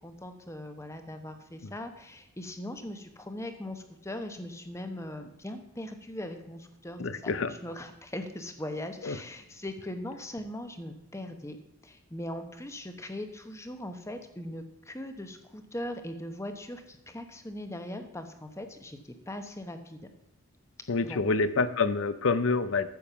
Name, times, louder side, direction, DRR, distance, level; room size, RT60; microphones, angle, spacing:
voice 1, 0.0-11.6 11.8-20.0 21.0-21.2, left 1 dB, 15° left, 7 dB, 1.0 m, -40 dB
voice 2, 7.0-7.5 9.0-9.2 20.9-22.9, left 4 dB, 70° left, 13 dB, 0.6 m, -27 dB
9.4 x 7.3 x 7.0 m, 0.85 s
head